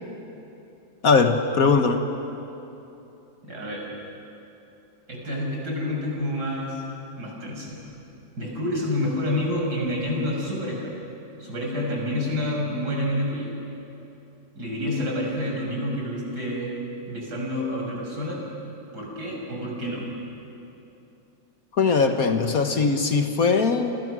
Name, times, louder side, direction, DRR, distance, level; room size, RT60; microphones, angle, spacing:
voice 1, 1.0-2.0 21.7-24.0, left 4 dB, 55° left, 6 dB, 1.6 m, -20 dB
voice 2, 3.4-3.9 5.1-6.8 7.2-7.8 8.4-10.9 11.4-13.5 14.5-16.7 17.1-18.4 18.9-20.1, left 1 dB, 65° right, -2 dB, 6.5 m, -28 dB
29.0 x 25.5 x 6.2 m, 2.9 s
omnidirectional pair, 1.9 m